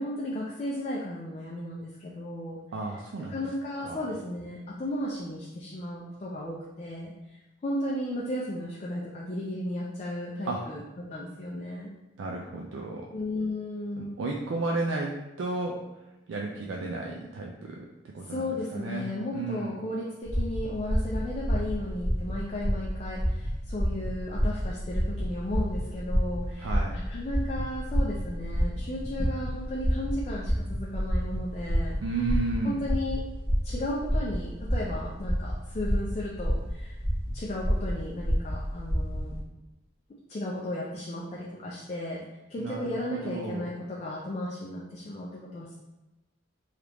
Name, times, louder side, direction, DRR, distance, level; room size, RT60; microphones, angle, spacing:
voice 1, 0.0-2.6 3.3-7.1 7.6-11.9 13.1-14.2 18.3-32.0 32.6-33.2 33.6-37.0 37.3-39.4 40.3-45.8, left 1 dB, 35° left, -4 dB, 0.4 m, -35 dB
voice 2, 2.7-3.4 3.8-4.0 10.5-10.6 12.2-13.1 14.0-15.1 15.4-15.8 16.3-17.9 18.1-19.1 19.3-19.7 26.6-26.9 32.0-32.8 42.6-43.7, right 3 dB, 85° right, -1 dB, 0.3 m, -33 dB
sound 1, 20.2-39.4, equal, 25° right, 0.9 m, -29 dB
3.3 x 2.4 x 3.0 m, 1.0 s
head